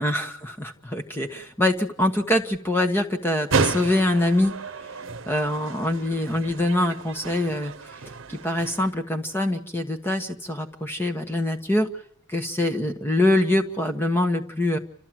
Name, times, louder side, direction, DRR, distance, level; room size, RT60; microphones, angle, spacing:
voice 1, 0.0-4.6 4.8-4.9 5.3-8.0 8.3-11.9 12.3-14.8, left 1 dB, 10° left, 6 dB, 1.3 m, -24 dB
sound 1, 3.5-8.9, right 4 dB, 75° right, 0.9 m, -31 dB
29.0 x 14.0 x 7.7 m, 0.72 s
head